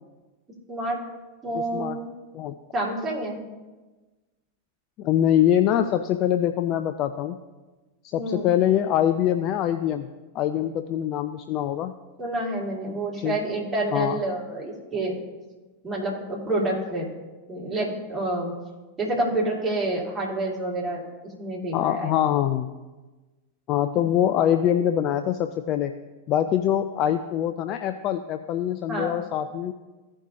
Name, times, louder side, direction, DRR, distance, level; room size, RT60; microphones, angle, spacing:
voice 1, 0.7-1.0 1.4-2.1 2.7-3.4 8.2-8.5 12.2-15.2 15.8-17.1 17.5-18.5 19.0-21.0 21.4-22.1 28.9-29.2, right 2 dB, 15° right, -5 dB, 2.5 m, -28 dB
voice 2, 1.5-2.0 2.3-2.6 5.0-7.4 8.0-11.9 13.2-13.4 13.9-14.2 21.7-22.7 23.7-26.0 26.3-29.7, left 10 dB, 35° left, 9 dB, 0.3 m, -24 dB
15.5 x 5.3 x 2.8 m, 1.2 s
figure-of-eight pair, 90°, 0 cm